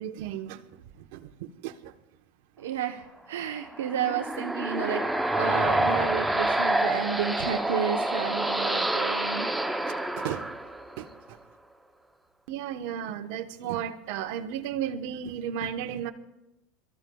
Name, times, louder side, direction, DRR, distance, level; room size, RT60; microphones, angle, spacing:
voice 1, 0.0-1.9 9.5-9.6 9.9-10.4 11.0-11.4 12.5-16.1, right 9 dB, 70° right, 6 dB, 1.1 m, -35 dB
voice 2, 2.6-9.5, right 8 dB, 90° right, 4 dB, 0.9 m, -32 dB
sound 1, 3.6-11.1, right 1 dB, 5° right, 0.7 m, -27 dB
27.0 x 14.0 x 2.4 m, 0.91 s
supercardioid pair, 110°, 0 cm